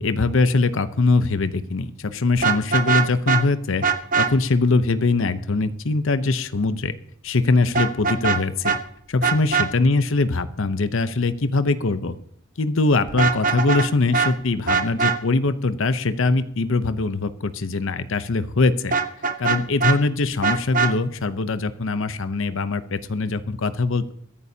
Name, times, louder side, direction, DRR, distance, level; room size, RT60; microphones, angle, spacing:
voice 1, 0.0-3.8 4.2-7.0 7.2-8.8 9.1-12.2 12.6-18.9 19.4-24.1, left 3 dB, 65° left, 12 dB, 0.7 m, -22 dB
Vehicle horn car horn honking, 2.4-3.4 3.8-4.3 7.7-8.4 8.6-8.8 9.2-9.7 13.1-13.9 14.1-14.3 14.7-15.2 18.9-20.0 20.4-20.9, right 5 dB, 40° right, 0.8 m, -21 dB
23.0 x 11.0 x 2.8 m, 0.68 s
head